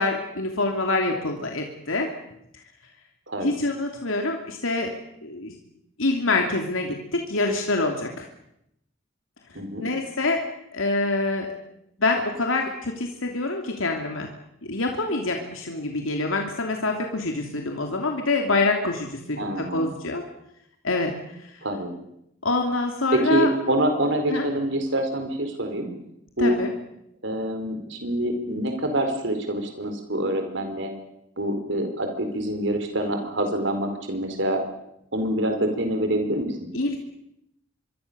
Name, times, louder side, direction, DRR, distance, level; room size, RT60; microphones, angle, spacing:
voice 1, 0.0-2.1 3.4-4.9 5.2-5.5 6.0-8.3 9.5-10.4 10.7-11.5 12.0-14.3 14.6-20.2 20.8-21.1 21.4-21.6 22.4-23.5 24.3-24.5 26.4-26.7 36.7-37.0, left 2 dB, 85° left, 3 dB, 3.0 m, -26 dB
voice 2, 9.5-9.9 19.4-19.9 21.6-21.9 23.1-25.9 26.4-26.6 27.2-30.9 31.4-34.6 35.1-36.7, right 1 dB, 65° right, 5 dB, 4.6 m, -26 dB
25.5 x 23.5 x 7.0 m, 0.79 s
head